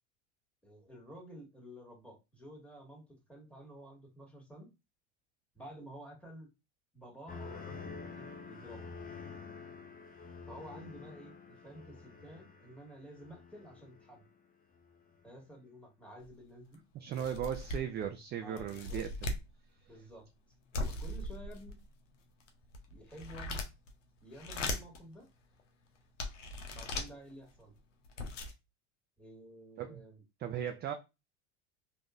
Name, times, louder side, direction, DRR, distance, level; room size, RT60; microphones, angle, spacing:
voice 1, 0.6-4.7 5.5-6.5 6.9-8.9 10.5-14.2 15.2-16.8 17.2-17.5 18.4-19.0 19.9-20.3 20.7-21.8 22.9-23.6 24.2-25.3 26.7-27.7 29.2-30.2, right 1 dB, 5° left, 1.7 m, -51 dB
sound 1, 7.3-14.3 14.7-15.2, left 4 dB, 25° left, 0.8 m, -48 dB
sound 2, 16.2-16.3 16.7-16.8 17.1-18.0 18.6-19.5 20.7-21.8 22.4-23.9 24.3-25.0 25.6-25.7 26.2-27.1 27.8-27.9 28.0-28.5, left 2 dB, 90° left, 0.7 m, -38 dB
voice 2, 16.9-19.1 29.8-30.0 30.4-30.9, right 9 dB, 30° right, 0.4 m, -37 dB
3.5 x 2.6 x 2.5 m
hypercardioid pair, 80°, 36 cm